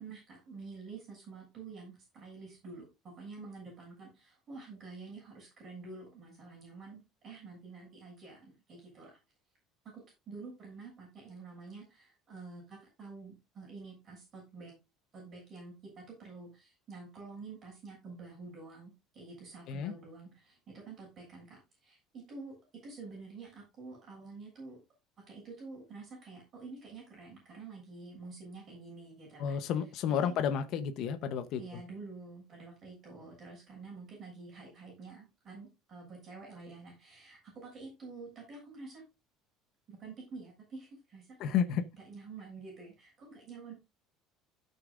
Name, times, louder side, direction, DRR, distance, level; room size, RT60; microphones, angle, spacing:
voice 1, 0.0-9.2 10.3-14.7 15.1-22.6 22.8-24.8 25.3-29.6 30.2-30.4 31.6-39.0 39.9-41.6 41.9-43.7, right 4 dB, 25° right, 7.0 m, -48 dB
voice 2, 29.4-31.8 41.4-41.8, left 8 dB, 45° left, 0.9 m, -31 dB
16.0 x 6.7 x 2.5 m
cardioid pair, 175°, 0 cm